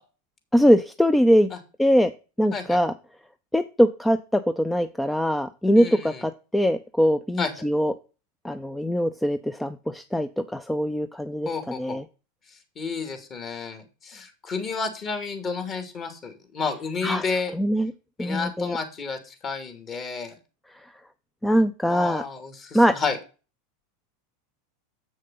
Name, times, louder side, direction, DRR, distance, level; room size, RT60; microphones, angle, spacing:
voice 1, 0.5-1.5 1.8-2.1 2.4-2.9 3.5-7.9 8.4-12.0 17.0-17.2 17.5-17.9 18.2-18.8 21.4-22.2 22.7-22.9, equal, 5° left, 11 dB, 0.6 m, -22 dB
voice 2, 5.8-6.2 7.4-7.5 11.5-12.0 12.8-17.5 18.2-20.4 21.8-23.2, left 4 dB, 35° left, 7 dB, 2.6 m, -31 dB
7.6 x 6.4 x 5.6 m, 0.33 s
hypercardioid pair, 105°, 0 cm